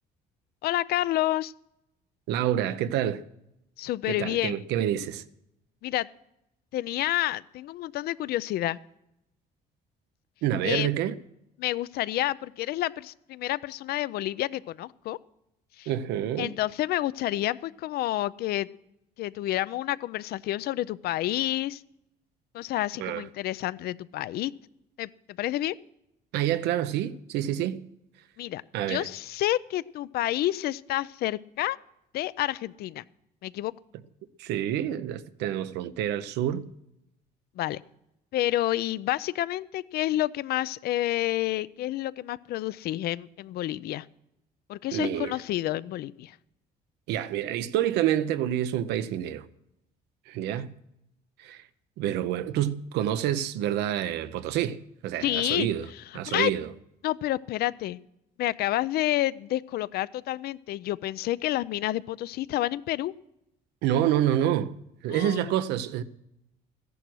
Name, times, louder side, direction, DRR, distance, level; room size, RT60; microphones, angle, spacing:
voice 1, 0.6-1.5 3.8-4.6 5.8-6.1 6.7-8.8 10.6-10.9 11.6-15.2 15.8-15.9 16.4-18.7 19.2-21.8 22.5-24.5 25.0-25.1 25.4-25.7 28.4-28.6 28.9-31.8 32.1-33.0 33.4-33.7 37.6-37.8 38.3-44.1 44.7-46.4 50.5-50.7 55.2-55.7 56.3-56.5 57.0-58.0 58.4-63.1 65.1-65.5, left 15 dB, 65° left, 0.5 m, -29 dB
voice 2, 2.3-3.2 4.0-5.2 10.4-11.1 15.9-16.5 23.0-23.2 26.3-27.9 28.7-29.1 34.4-36.7 44.9-45.4 47.1-49.5 50.3-50.7 51.4-51.6 52.0-55.9 56.1-56.7 63.8-64.7 65.0-66.0, right 11 dB, 90° right, 0.7 m, -28 dB
14.5 x 11.0 x 6.2 m
cardioid pair, 110°, 17 cm